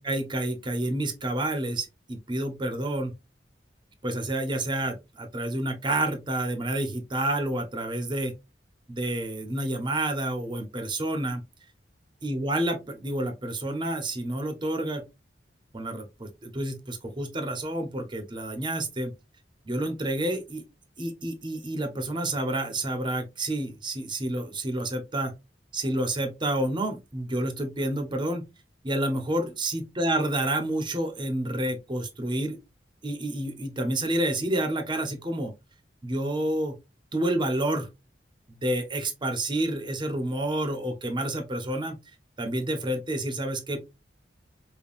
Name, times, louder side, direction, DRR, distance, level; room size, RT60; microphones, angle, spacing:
voice 1, 0.0-3.1 4.0-8.3 8.9-11.4 12.2-15.0 15.7-19.1 19.7-20.6 21.0-25.3 25.7-28.5 28.8-32.6 33.0-35.5 36.0-36.7 37.1-37.9 38.5-42.0 42.4-43.8, right 1 dB, 25° right, 0.7 m, -29 dB
5.3 x 2.2 x 2.4 m
head